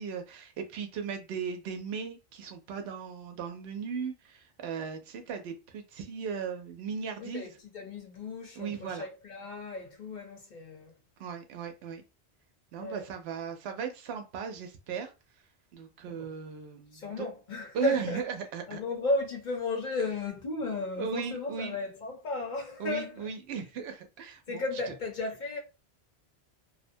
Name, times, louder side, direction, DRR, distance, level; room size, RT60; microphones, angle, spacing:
voice 1, 0.0-7.5 8.6-9.1 11.2-12.0 12.7-15.1 15.7-17.3 17.7-18.8 21.0-21.8 22.8-24.6, right 6 dB, 75° right, 0.8 m, -37 dB
voice 2, 7.2-10.9 12.8-13.1 16.1-16.3 16.9-18.2 18.7-23.2 24.5-25.6, left 2 dB, 50° left, 0.9 m, -34 dB
2.6 x 2.1 x 2.6 m
omnidirectional pair, 1.1 m